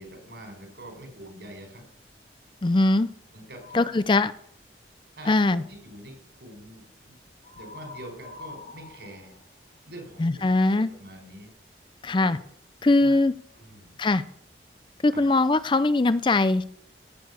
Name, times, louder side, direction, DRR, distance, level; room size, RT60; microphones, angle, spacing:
voice 1, 0.0-1.8 3.3-4.2 5.2-7.2 7.5-9.3 9.9-11.5 12.2-12.3 12.9-13.2 13.5-13.9 15.1-15.3, right 1 dB, 70° right, 4 dB, 5.0 m, -44 dB
voice 2, 2.6-3.1 3.7-4.3 5.3-5.6 10.2-10.9 12.0-12.4 12.8-13.3 14.0-14.2 15.0-16.6, left 2 dB, 25° left, 15 dB, 0.4 m, -21 dB
sound 1, 3.6-4.2 7.4-10.2, left 3 dB, 45° left, 1.7 m, -46 dB
16.5 x 6.8 x 8.2 m, 0.67 s
head